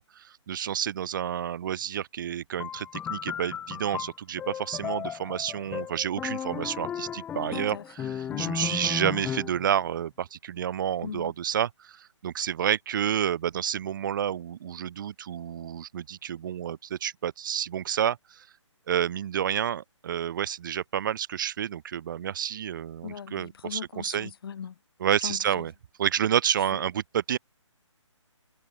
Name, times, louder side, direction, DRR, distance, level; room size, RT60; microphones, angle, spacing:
voice 1, 0.0-18.5 18.9-24.3 25.0-25.7 26.0-27.4, right 9 dB, 40° right, 3.3 m, -29 dB
sound 1, 2.6-9.7, left 9 dB, 10° left, 1.0 m, -35 dB
voice 2, 7.7-8.4 11.0-11.3 23.0-24.7 25.2-25.4, left 7 dB, 50° left, 2.4 m, -39 dB
hypercardioid pair, 155°, 16 cm